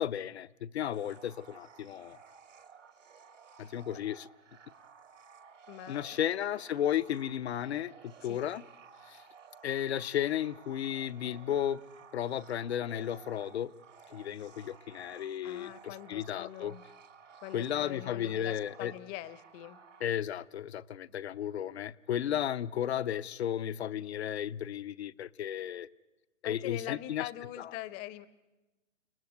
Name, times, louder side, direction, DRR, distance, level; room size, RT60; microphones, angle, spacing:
voice 1, 0.0-2.2 3.6-4.3 5.9-8.6 9.1-9.2 9.6-11.8 12.1-13.7 14.1-16.8 17.5-18.9 20.0-25.9 26.4-27.3 27.6-27.7, left 10 dB, 55° left, 0.8 m, -34 dB
sound 1, 0.9-20.0, right 6 dB, 75° right, 2.9 m, -55 dB
voice 2, 5.7-6.2 8.2-8.4 15.4-16.8 17.4-19.8 26.4-28.3, left 15 dB, 20° left, 0.8 m, -43 dB
29.5 x 18.5 x 9.4 m
hypercardioid pair, 130°, 38 cm